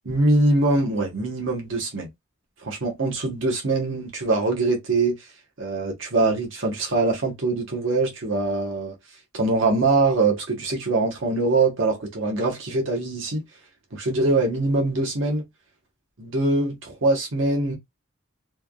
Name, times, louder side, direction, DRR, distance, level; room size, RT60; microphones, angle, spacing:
voice 1, 0.0-2.1 2.6-5.2 5.6-8.9 9.3-13.4 13.9-15.4 16.2-17.8, right 2 dB, 75° right, 1.1 m, -23 dB
3.3 x 2.3 x 2.2 m
head